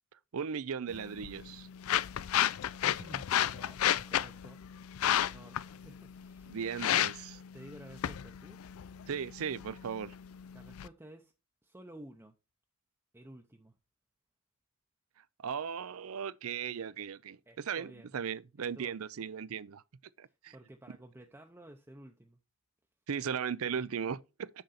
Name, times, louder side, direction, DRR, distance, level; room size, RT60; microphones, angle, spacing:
voice 1, 0.3-1.7 6.5-7.4 9.1-10.1 15.4-17.4 17.7-19.8 20.2-20.5 23.1-24.5, right 7 dB, 70° right, 0.5 m, -37 dB
sound 1, 0.9-10.9, left 11 dB, 70° left, 0.4 m, -33 dB
voice 2, 2.8-4.6 5.2-6.6 7.5-8.6 10.5-11.3 11.6-12.3 13.1-13.7 17.5-18.2 18.7-19.0 20.3-22.4, right 1 dB, 10° right, 0.7 m, -53 dB
6.6 x 6.4 x 4.2 m
head